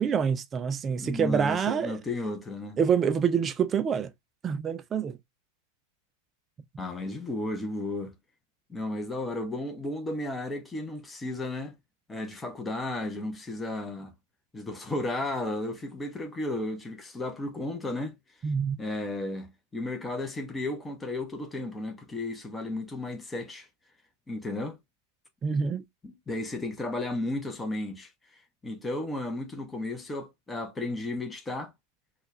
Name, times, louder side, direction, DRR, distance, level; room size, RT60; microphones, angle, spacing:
voice 1, 0.0-2.0 2.8-4.1 4.4-5.2 18.4-18.8 25.4-25.8, right 7 dB, 25° right, 0.4 m, -26 dB
voice 2, 0.9-2.8 6.8-8.1 8.7-11.8 12.1-14.1 14.5-18.2 18.8-23.7 24.3-24.8 26.0-28.1 28.6-31.7, left 2 dB, 10° left, 0.9 m, -34 dB
4.3 x 2.4 x 3.1 m
figure-of-eight pair, 90°, 0 cm